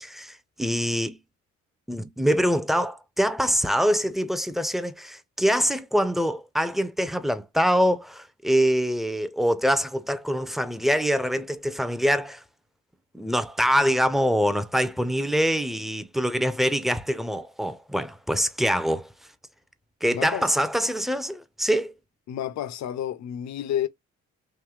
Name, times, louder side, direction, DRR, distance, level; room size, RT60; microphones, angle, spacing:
voice 1, 0.0-1.2 1.9-12.4 13.1-19.1 20.0-21.9, equal, ahead, 0.4 m, -24 dB
voice 2, 20.1-20.5 22.3-23.9, left 10 dB, 65° left, 0.6 m, -30 dB
3.7 x 2.7 x 3.1 m
cardioid pair, 90°, 30 cm